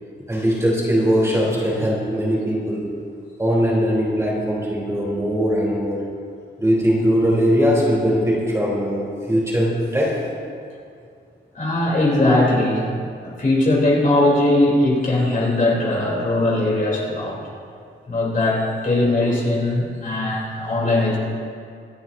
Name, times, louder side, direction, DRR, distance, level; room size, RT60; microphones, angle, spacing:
voice 1, 0.3-2.9 3.4-6.0 6.6-10.2, equal, 15° right, -5 dB, 3.4 m, -20 dB
voice 2, 11.6-12.8 13.2-17.4 18.1-21.2, left 2 dB, 45° left, -4 dB, 3.4 m, -19 dB
25.5 x 11.0 x 2.7 m, 2.3 s
wide cardioid pair, 165°, 19 cm